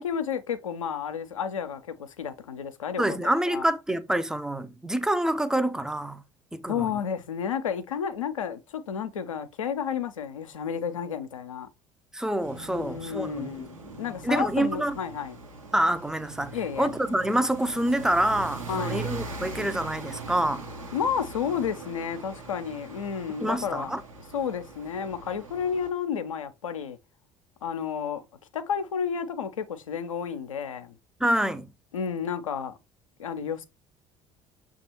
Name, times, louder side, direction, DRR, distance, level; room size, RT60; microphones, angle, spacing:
voice 1, 0.0-3.0 3.5-3.6 6.7-11.7 12.8-15.4 16.5-16.9 18.7-19.1 20.9-24.0 24.3-27.0 27.6-28.2 28.5-31.0 31.9-32.7 33.2-33.7, left 7 dB, 80° left, 0.5 m, -31 dB
voice 2, 3.0-6.2 6.5-6.9 12.1-13.5 14.2-15.0 15.7-20.6 23.4-24.0 31.2-31.7, right 1 dB, 5° right, 0.4 m, -27 dB
sound 1, 12.4-25.9, right 4 dB, 80° right, 0.9 m, -41 dB
6.5 x 2.4 x 2.8 m
figure-of-eight pair, 60°, 17 cm